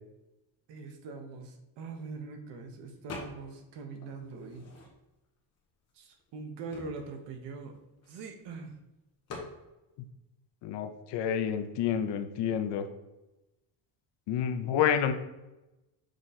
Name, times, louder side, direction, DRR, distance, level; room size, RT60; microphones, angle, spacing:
voice 1, 0.7-4.7 5.9-7.7 8.1-8.8, right 4 dB, 60° right, 5 dB, 1.1 m, -42 dB
sound 1, 3.1-3.7 4.0-5.3 5.9-6.0 6.2-8.4 9.3-9.6, left 3 dB, 30° left, 1.3 m, -45 dB
voice 2, 10.6-12.9 14.3-15.1, left 8 dB, 60° left, 8 dB, 0.7 m, -29 dB
6.5 x 3.8 x 4.1 m, 0.99 s
cardioid pair, 180°, 47 cm